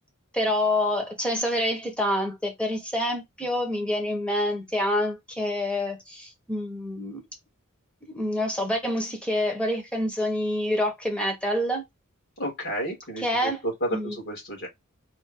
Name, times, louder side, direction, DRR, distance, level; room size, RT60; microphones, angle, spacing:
voice 1, 0.3-7.2 8.1-11.8 13.2-14.2, left 1 dB, 5° left, 1.2 m, -27 dB
voice 2, 12.4-14.7, equal, 50° left, 2.7 m, -31 dB
4.3 x 2.7 x 3.8 m
head